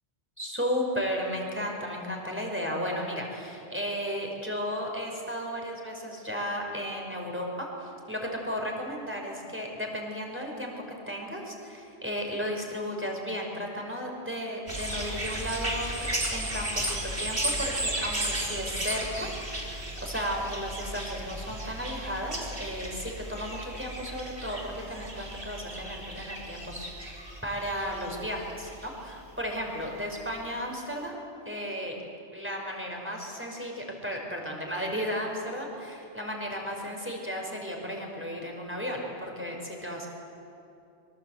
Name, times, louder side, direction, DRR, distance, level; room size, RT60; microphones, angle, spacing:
voice 1, 0.4-10.7 11.1-32.0 32.3-40.1, equal, 10° right, 0 dB, 4.9 m, -34 dB
sound 1, 14.7-29.1 29.8-29.9, right 1 dB, 50° right, 4.0 m, -34 dB
25.5 x 24.0 x 8.2 m, 2.7 s
omnidirectional pair, 1.2 m